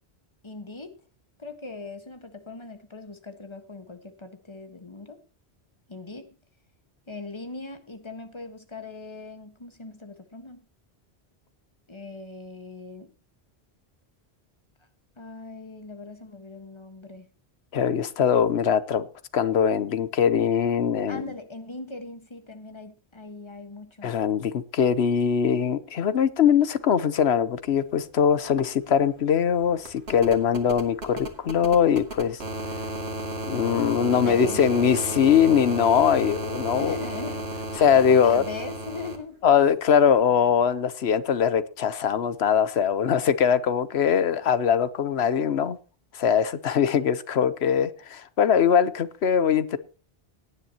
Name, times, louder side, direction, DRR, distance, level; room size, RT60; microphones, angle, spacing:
voice 1, 0.4-0.9 1.4-5.2 5.9-6.3 7.1-10.6 11.9-13.1 15.2-17.3 21.1-24.1 34.1-34.6 36.8-37.5 38.1-39.4, left 3 dB, 25° left, 1.5 m, -40 dB
voice 2, 17.7-19.1 19.3-21.2 24.0-32.4 33.5-37.0 37.8-38.4 39.4-45.8 46.1-49.8, left 7 dB, 75° left, 1.1 m, -22 dB
sound 1, 27.9-28.0 28.3-39.2 40.6-40.7, right 1 dB, 70° right, 2.6 m, -34 dB
18.0 x 9.8 x 2.9 m
omnidirectional pair, 1.1 m